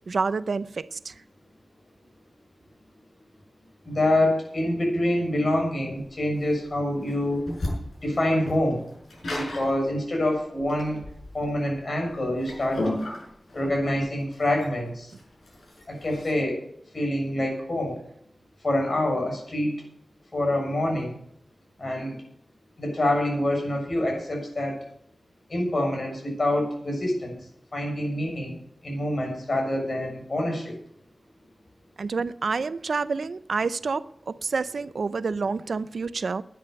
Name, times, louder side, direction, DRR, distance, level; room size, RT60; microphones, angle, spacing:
voice 1, 0.1-1.1 32.0-36.4, right 4 dB, 80° right, 0.5 m, -28 dB
voice 2, 3.8-7.5 8.0-8.8 9.3-11.0 11.3-12.9 13.5-15.1 15.9-16.6 16.9-18.0 18.6-19.7 20.3-21.2 21.8-22.2 22.8-24.8 25.5-27.3 27.7-28.6 28.8-30.7, left 1 dB, 55° left, 6.8 m, -26 dB
sound 1, 6.0-16.4, left 1 dB, 70° left, 6.2 m, -35 dB
11.0 x 10.0 x 6.9 m
wide cardioid pair, 75°, 0 cm